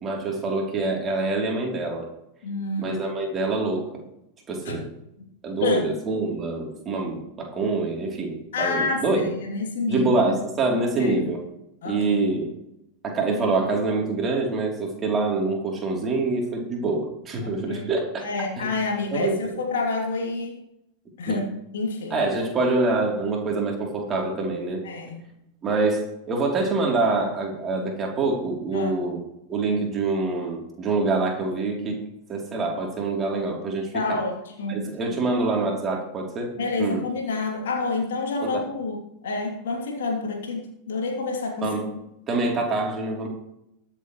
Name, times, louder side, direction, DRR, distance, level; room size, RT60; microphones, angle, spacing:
voice 1, 0.0-2.1 2.8-3.9 4.5-4.9 5.4-9.3 9.9-11.4 11.9-12.5 13.0-18.3 18.6-18.7 19.1-19.4 21.3-21.4 22.1-24.8 25.6-29.2 29.5-32.0 32.3-34.2 34.7-37.0 38.4-38.6 41.6-41.9 42.3-43.3, right 3 dB, 25° right, 0 dB, 3.4 m, -25 dB
voice 2, 2.4-3.0 4.6-4.8 5.6-5.9 8.5-10.3 11.0-11.3 11.8-12.3 17.4-17.9 18.2-20.6 21.2-21.5 21.7-22.2 24.8-25.2 28.7-29.1 33.9-34.8 36.5-39.0 39.2-41.8, left 3 dB, 60° left, 0 dB, 3.1 m, -28 dB
22.5 x 7.6 x 3.2 m, 0.82 s
figure-of-eight pair, 90°, 0 cm